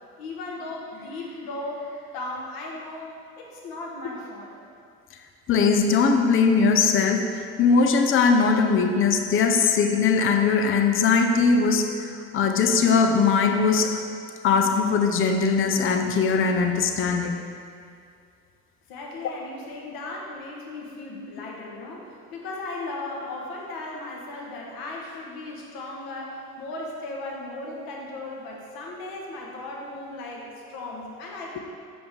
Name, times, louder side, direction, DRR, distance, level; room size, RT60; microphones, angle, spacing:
voice 1, 0.2-4.6 18.9-31.6, left 2 dB, 50° left, -1 dB, 1.6 m, -36 dB
voice 2, 5.5-13.9 14.4-17.4, left 5 dB, 30° left, 5 dB, 0.7 m, -20 dB
7.8 x 6.7 x 3.6 m, 2.3 s
figure-of-eight pair, 60°, 45 cm